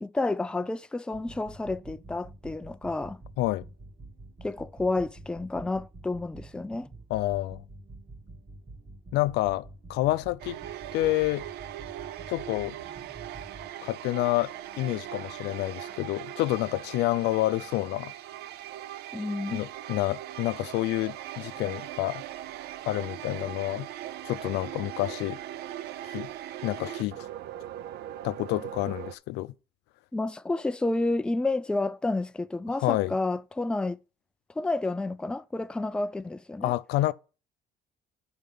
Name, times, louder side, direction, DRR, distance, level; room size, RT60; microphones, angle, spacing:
voice 1, 0.0-3.2 4.4-6.9 19.1-19.6 30.1-34.0 34.6-36.7, left 2 dB, 5° left, 0.4 m, -30 dB
sound 1, 1.1-13.7, right 2 dB, 35° right, 2.3 m, -47 dB
voice 2, 7.1-7.6 9.1-10.6 10.9-11.5 12.3-12.8 13.8-18.1 19.5-22.2 22.9-23.9 24.2-25.4 26.1-26.3 26.6-27.3 28.2-29.5 32.8-33.1 36.6-37.1, left 17 dB, 90° left, 0.5 m, -28 dB
sound 2, 10.4-29.1, right 12 dB, 75° right, 0.6 m, -40 dB
9.3 x 4.4 x 5.3 m
cardioid pair, 110°, 17 cm